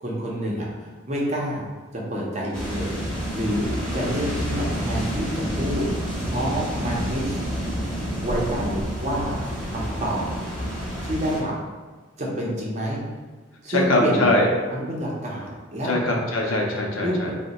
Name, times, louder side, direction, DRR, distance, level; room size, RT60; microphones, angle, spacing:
voice 1, 0.0-1.6 1.9-3.0 3.3-7.4 8.2-9.4 9.7-10.2 11.0-11.5 12.2-13.0 13.6-14.3 14.7-15.9 17.0-17.3, equal, 35° right, -4 dB, 0.6 m, -28 dB
sound 1, 2.5-11.4, equal, 5° left, 0.7 m, -29 dB
voice 2, 13.7-14.5 15.8-17.3, left 1 dB, 75° left, 0 dB, 0.6 m, -22 dB
2.8 x 2.1 x 4.1 m, 1.3 s
head